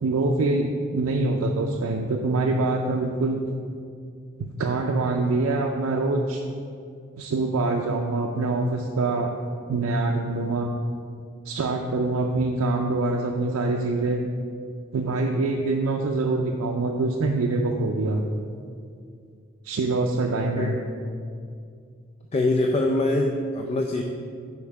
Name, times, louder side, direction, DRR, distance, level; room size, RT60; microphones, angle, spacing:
voice 1, 0.0-3.4 4.4-6.4 7.2-9.3 9.7-10.7 11.4-14.2 14.9-18.2 19.6-20.8, right 2 dB, 80° right, 1 dB, 0.4 m, -24 dB
voice 2, 22.3-24.0, left 2 dB, 30° left, 2 dB, 0.3 m, -23 dB
5.4 x 4.6 x 4.7 m, 2.3 s
head